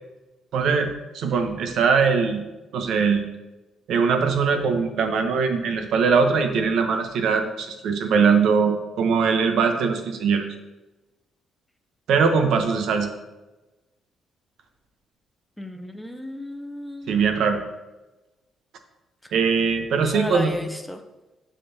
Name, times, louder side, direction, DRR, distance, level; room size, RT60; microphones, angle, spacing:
voice 1, 0.5-2.4 2.7-3.2 3.9-10.4 12.1-13.1 17.1-17.6 19.3-20.5, right 5 dB, 75° right, 6 dB, 0.8 m, -21 dB
voice 2, 15.6-17.1 20.0-21.0, equal, 5° left, 6 dB, 0.6 m, -34 dB
10.0 x 3.7 x 2.7 m, 1.1 s
cardioid pair, 90°, 0 cm